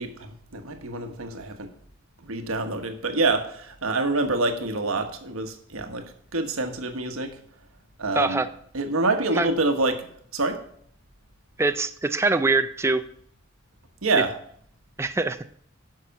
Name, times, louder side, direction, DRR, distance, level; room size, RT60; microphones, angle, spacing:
voice 1, 0.0-1.7 2.2-6.0 6.3-7.4 8.0-8.4 8.7-10.1 10.3-10.6 14.0-14.3, right 3 dB, 85° right, 6 dB, 1.3 m, -26 dB
voice 2, 8.2-8.5 9.4-9.5 11.6-13.0 15.0-15.4, right 3 dB, 15° right, 11 dB, 0.4 m, -23 dB
10.5 x 5.8 x 5.8 m, 0.64 s
head